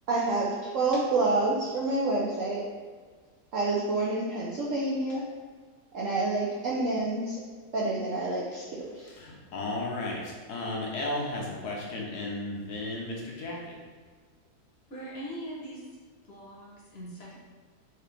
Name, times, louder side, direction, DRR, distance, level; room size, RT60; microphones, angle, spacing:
voice 1, 0.1-2.6 3.5-5.3 5.9-7.4 7.7-8.6 9.0-9.1, right 2 dB, 65° right, -5 dB, 0.8 m, -28 dB
voice 2, 9.1-13.7, left 2 dB, 65° left, -2 dB, 1.3 m, -34 dB
voice 3, 14.9-15.9 16.2-17.4, equal, 40° left, -5 dB, 1.1 m, -41 dB
4.9 x 2.8 x 3.3 m, 1.5 s
omnidirectional pair, 1.9 m